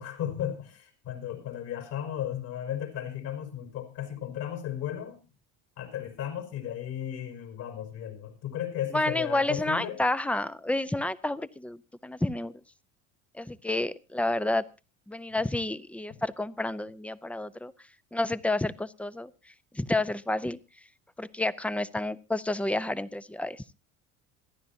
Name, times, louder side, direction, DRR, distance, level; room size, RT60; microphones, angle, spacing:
voice 1, 0.0-5.2 5.8-10.0, left 10 dB, 65° left, 4 dB, 5.2 m, -35 dB
voice 2, 8.9-12.6 13.3-14.6 15.1-17.7 18.1-20.6 21.2-23.6, left 2 dB, 5° left, 16 dB, 0.6 m, -30 dB
27.5 x 10.0 x 2.8 m, 0.29 s
supercardioid pair, 95°, 36 cm